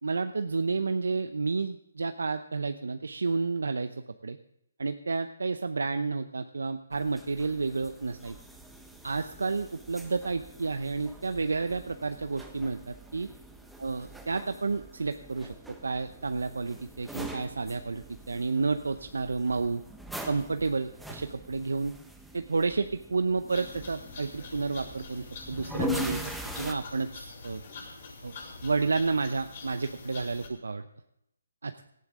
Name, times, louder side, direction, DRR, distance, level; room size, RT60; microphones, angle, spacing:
voice 1, 0.0-4.4 4.8-8.4 9.0-13.3 13.8-19.8 20.3-21.9 22.3-26.2 26.6-27.6 28.2-28.3 28.6-30.9 31.6-31.7, right 4 dB, 80° right, 9 dB, 0.8 m, -30 dB
sound 1, 6.9-26.7, right 1 dB, ahead, 1.1 m, -43 dB
sound 2, 23.5-30.5, left 3 dB, 50° left, 6.6 m, -45 dB
18.0 x 14.0 x 3.7 m, 0.79 s
hypercardioid pair, 150°, 0 cm